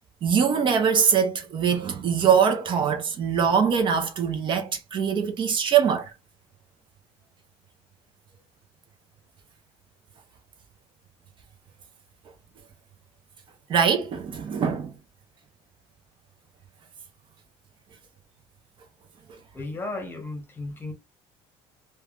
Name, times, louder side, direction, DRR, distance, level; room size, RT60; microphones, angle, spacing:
voice 1, 0.2-6.1 13.7-14.9, right 7 dB, 45° right, 0.6 m, -22 dB
voice 2, 19.5-20.9, left 2 dB, 20° left, 1.0 m, -34 dB
3.1 x 2.2 x 2.4 m
cardioid pair, 120°, 12 cm